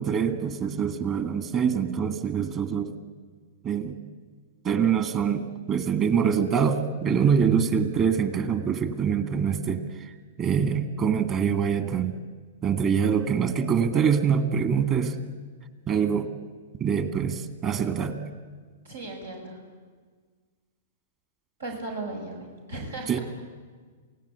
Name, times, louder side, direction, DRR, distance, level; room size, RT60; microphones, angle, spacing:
voice 1, 0.0-2.9 3.6-4.0 4.6-9.8 10.4-12.1 12.6-15.1 15.9-16.3 16.8-18.2 23.1-23.2, right 7 dB, 30° right, 9 dB, 2.1 m, -24 dB
voice 2, 18.8-19.6 21.6-23.2, right 2 dB, 90° right, 0 dB, 5.7 m, -36 dB
27.5 x 17.5 x 8.4 m, 1.5 s
hypercardioid pair, 120°, 0 cm